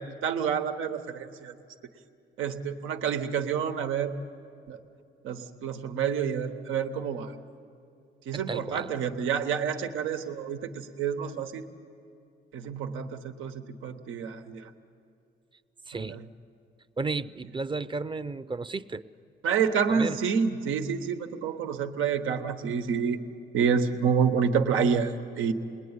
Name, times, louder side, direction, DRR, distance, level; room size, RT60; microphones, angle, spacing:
voice 1, 0.0-1.5 2.4-4.1 4.7-4.8 5.2-7.3 8.3-11.6 12.5-14.7 16.0-16.2 19.4-23.2 23.5-25.5, right 6 dB, 90° right, 5 dB, 1.3 m, -28 dB
voice 2, 8.3-8.9 15.9-16.2 17.0-19.1 19.9-20.2, right 3 dB, 25° right, 13 dB, 0.7 m, -33 dB
28.0 x 21.0 x 9.7 m, 2.5 s
cardioid pair, 90°, 20 cm